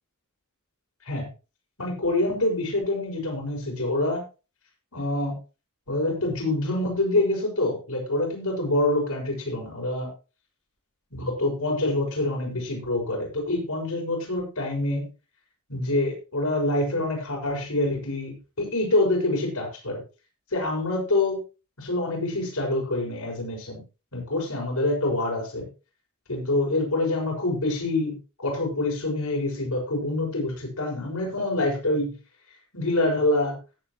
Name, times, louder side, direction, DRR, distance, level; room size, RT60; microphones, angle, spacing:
voice 1, 1.8-4.2 4.9-5.4 5.9-10.1 11.1-15.1 15.7-20.0 20.5-21.4 21.8-23.8 24.1-25.7 26.3-32.1 32.7-33.6, left 2 dB, 80° left, 0 dB, 6.2 m, -26 dB
17.0 x 8.0 x 3.1 m, 0.31 s
head